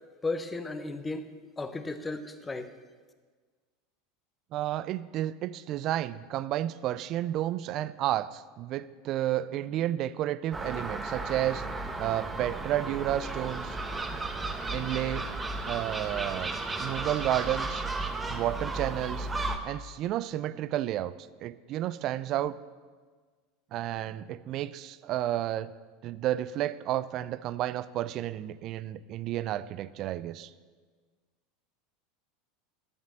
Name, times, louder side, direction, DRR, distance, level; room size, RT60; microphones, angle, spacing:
voice 1, 0.2-2.7, left 3 dB, 15° left, 9 dB, 1.0 m, -35 dB
voice 2, 4.5-11.6 12.0-13.8 14.7-15.3 15.7-16.5 16.8-17.8 18.3-19.3 19.6-21.1 21.4-22.6 23.7-25.7 26.0-30.5, right 13 dB, 50° right, 16 dB, 0.4 m, -31 dB
Gull seagull, 10.5-19.6, right 2 dB, 15° right, 1.2 m, -34 dB
12.5 x 7.3 x 6.4 m, 1.5 s
hypercardioid pair, 85°, 0 cm